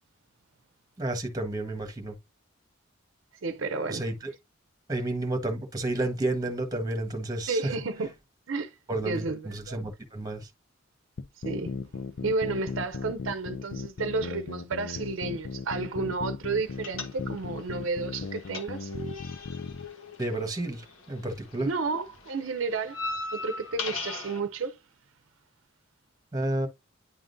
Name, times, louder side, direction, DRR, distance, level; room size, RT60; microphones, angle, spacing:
voice 1, 1.0-2.2 3.9-4.3 4.9-7.7 8.9-10.5 20.2-21.7 26.3-26.7, right 2 dB, 15° right, 1.2 m, -31 dB
voice 2, 3.4-4.0 7.5-8.1 8.5-8.7 9.0-9.8 11.4-11.8 12.2-18.9 21.6-23.0 23.3-24.8, right 4 dB, 70° right, 0.6 m, -31 dB
sound 1, 11.2-19.9, left 4 dB, 70° left, 0.5 m, -36 dB
sound 2, 16.8-17.6 17.9-21.3 21.5-24.4, left 3 dB, 85° left, 1.2 m, -37 dB
10.0 x 3.7 x 2.5 m
head